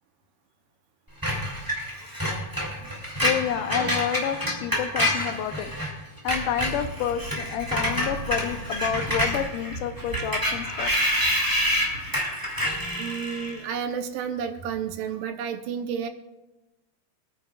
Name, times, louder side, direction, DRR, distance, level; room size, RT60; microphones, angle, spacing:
Screech, 1.2-5.9 6.2-13.6, equal, 5° right, 2.0 m, -27 dB
voice 1, 3.2-5.7 6.2-10.9, left 9 dB, 80° left, 8 dB, 2.2 m, -29 dB
sound 1, 6.7-12.1, right 3 dB, 35° right, 1.8 m, -41 dB
voice 2, 12.9-16.1, right 7 dB, 80° right, 7 dB, 2.4 m, -31 dB
24.0 x 9.6 x 2.4 m, 1.0 s
omnidirectional pair, 3.9 m